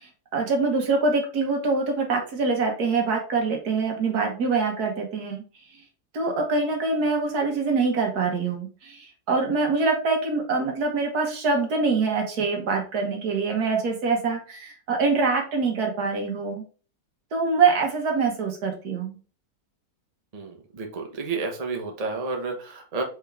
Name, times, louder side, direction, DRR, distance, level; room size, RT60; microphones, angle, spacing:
voice 1, 0.0-5.4 6.1-16.6 17.3-19.2, right 4 dB, 85° right, 2 dB, 1.7 m, -24 dB
voice 2, 20.3-23.0, right 4 dB, 30° right, 3 dB, 0.8 m, -31 dB
4.5 x 3.5 x 3.4 m, 0.37 s
omnidirectional pair, 1.6 m